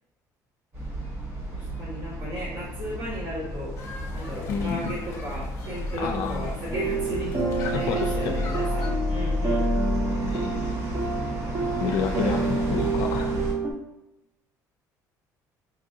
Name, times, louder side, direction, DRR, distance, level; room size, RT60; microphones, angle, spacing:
sound 1, 0.7-13.5, left 1 dB, 45° right, 1.3 m, -32 dB
voice 1, 1.5-3.7 4.1-9.7, equal, 70° right, -8 dB, 1.4 m, -35 dB
sound 2, 3.8-8.9, left 3 dB, 40° left, 0.9 m, -38 dB
voice 2, 4.5-5.0 6.0-6.5 7.6-8.5 10.2-10.8 11.8-13.3, left 6 dB, 80° left, 4 dB, 0.4 m, -30 dB
sound 3, 6.7-13.7, right 4 dB, 20° right, 0.6 m, -28 dB
5.1 x 2.5 x 2.7 m, 0.93 s
cardioid pair, 150°, 7 cm